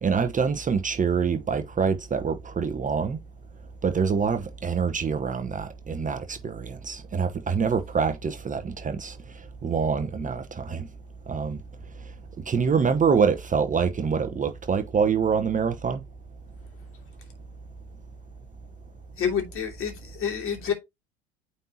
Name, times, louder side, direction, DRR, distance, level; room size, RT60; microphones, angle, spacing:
voice 1, 0.0-3.2 3.8-9.2 9.6-10.9 11.3-11.6 12.5-16.0, right 6 dB, 25° right, 1.0 m, -25 dB
voice 2, 19.2-20.7, left 7 dB, 40° left, 2.8 m, -28 dB
9.0 x 4.3 x 2.9 m
hypercardioid pair, 75°, 33 cm